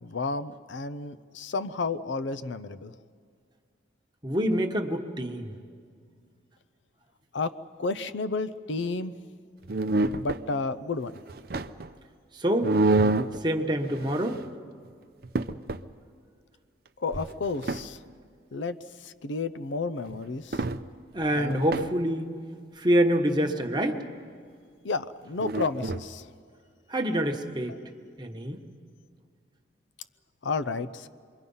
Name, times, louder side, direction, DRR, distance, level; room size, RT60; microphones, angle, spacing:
voice 1, 0.0-2.9 7.3-7.5 7.8-9.2 10.1-11.1 17.0-18.0 18.5-20.6 21.4-21.9 24.8-26.3 30.4-31.1, left 3 dB, 75° left, 12 dB, 0.6 m, -32 dB
voice 2, 4.2-5.5 12.3-12.8 13.4-14.4 21.1-22.3 22.7-24.0 26.9-27.8 28.2-28.6, equal, 25° right, 3 dB, 1.2 m, -26 dB
Chair moving, 9.6-10.4 11.1-11.9 12.6-13.4 13.9-14.5 14.8-14.9 15.2-15.8 17.1-17.9 20.1-20.2 20.5-20.8 21.2-21.9 25.4-26.1, right 2 dB, 50° right, 0.5 m, -27 dB
27.0 x 22.5 x 5.5 m, 2.1 s
head